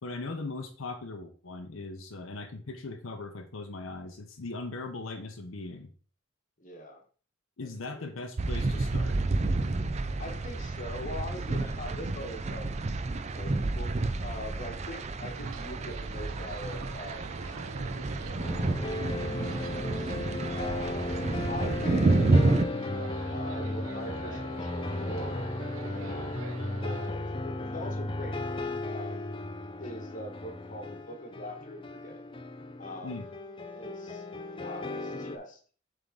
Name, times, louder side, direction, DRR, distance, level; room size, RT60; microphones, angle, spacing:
voice 1, 0.0-5.9 7.6-9.2 33.0-33.3, left 3 dB, 85° left, 4 dB, 0.8 m, -39 dB
voice 2, 6.6-7.0 7.6-7.7 8.0-8.1 10.2-12.7 13.3-13.9 14.2-18.4 18.7-20.1 20.5-22.9 23.3-25.5 25.8-28.4 28.8-29.3 29.8-32.2 32.8-33.3 33.7-34.2 34.6-35.6, left 1 dB, 40° left, 3 dB, 1.3 m, -42 dB
sound 1, 8.4-22.6, right 2 dB, 35° right, 0.4 m, -30 dB
sound 2, 15.3-27.1, right 4 dB, 90° right, 0.8 m, -46 dB
sound 3, 18.4-35.4, left 2 dB, 25° left, 0.5 m, -36 dB
7.4 x 3.7 x 3.6 m, 0.41 s
head